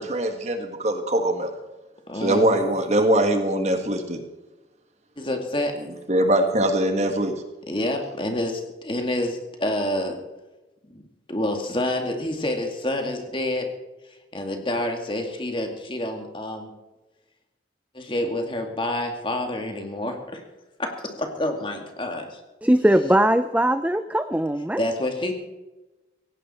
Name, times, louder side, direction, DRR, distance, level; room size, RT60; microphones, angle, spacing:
voice 1, 0.0-1.5 2.2-4.2 6.1-7.4, right 1 dB, 40° right, 1.8 m, -22 dB
voice 2, 2.1-2.6 5.2-5.8 7.7-10.2 10.9-13.7 14.3-16.7 17.9-20.4 20.8-22.4 24.8-25.3, left 1 dB, 30° left, 2.4 m, -28 dB
voice 3, 22.6-24.8, right 1 dB, 10° right, 0.4 m, -20 dB
17.0 x 16.5 x 4.4 m
head